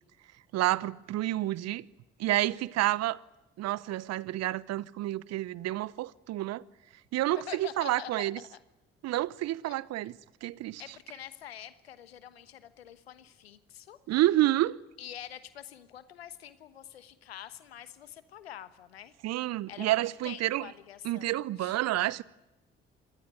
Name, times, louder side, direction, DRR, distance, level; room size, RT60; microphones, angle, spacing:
voice 1, 0.5-1.8 2.2-3.2 3.6-6.6 7.1-8.4 9.0-10.1 10.4-10.8 14.1-14.8 19.2-20.7 21.0-22.2, right 15 dB, 60° right, 0.9 m, -29 dB
voice 2, 7.3-8.6 9.6-9.8 10.8-14.0 15.0-19.1 19.7-19.9 20.2-21.3 21.6-21.8, left 10 dB, 85° left, 1.3 m, -46 dB
26.5 x 20.0 x 9.5 m
figure-of-eight pair, 45°, 30 cm